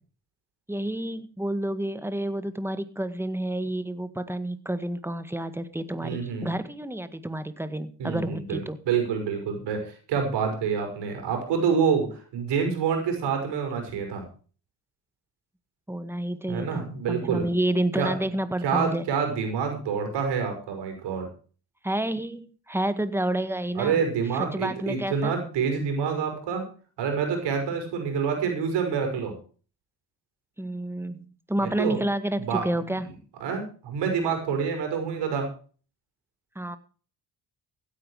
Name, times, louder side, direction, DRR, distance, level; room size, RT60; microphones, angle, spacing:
voice 1, 0.7-8.8 15.9-19.1 21.8-24.0 24.3-25.3 30.6-33.1 36.5-36.8, right 1 dB, 5° right, 12 dB, 1.7 m, -29 dB
voice 2, 6.0-6.5 8.0-14.2 16.5-17.5 18.0-18.1 18.6-21.3 23.7-26.6 27.0-29.3 31.6-32.0 32.4-33.1 33.4-35.5, right 6 dB, 90° right, 4 dB, 6.1 m, -27 dB
16.0 x 10.0 x 4.9 m, 0.40 s
cardioid pair, 85°, 40 cm